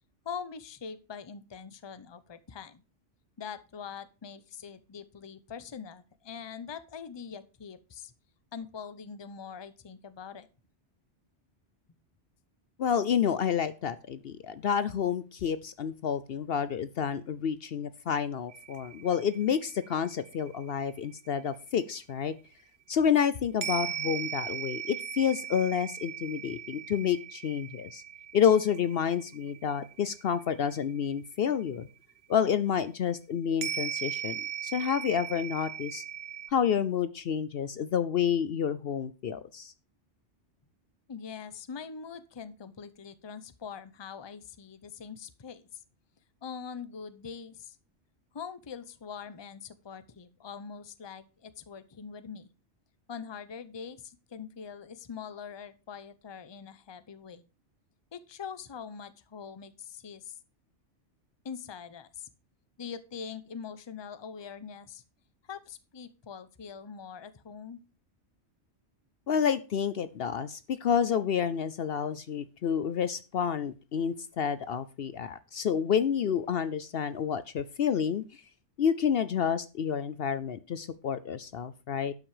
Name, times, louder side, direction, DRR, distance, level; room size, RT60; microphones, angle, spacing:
voice 1, 0.2-2.8 3.4-8.1 8.5-10.5 41.1-45.8 46.4-47.8 48.3-52.5 53.1-57.5 58.1-60.4 61.4-62.3 62.8-65.0 65.5-67.8, left 6 dB, 25° left, 14 dB, 0.7 m, -43 dB
voice 2, 12.8-22.3 22.9-28.0 28.3-31.9 32.3-36.0 36.5-39.7 69.3-78.4 78.8-82.1, left 8 dB, 60° left, 14 dB, 0.8 m, -29 dB
sound 1, 18.5-22.1 23.6-31.7 32.1-32.2 33.6-36.5, right 9 dB, 65° right, 0.9 m, -39 dB
12.0 x 6.1 x 4.8 m, 0.31 s
omnidirectional pair, 1.2 m